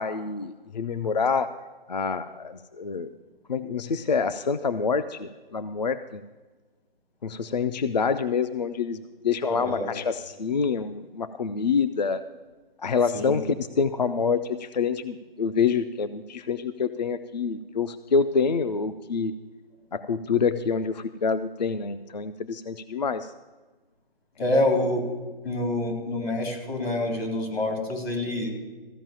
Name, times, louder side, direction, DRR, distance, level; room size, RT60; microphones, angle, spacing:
voice 1, 0.0-1.5 1.9-3.1 3.5-6.2 7.2-12.2 12.8-19.3 19.9-23.3, left 5 dB, 45° left, 12 dB, 0.4 m, -27 dB
voice 2, 9.4-9.8 13.1-13.4 24.4-25.0 25.4-28.5, left 1 dB, 85° left, 0 dB, 3.8 m, -26 dB
14.5 x 5.4 x 8.8 m, 1.3 s
hypercardioid pair, 165°, 30 cm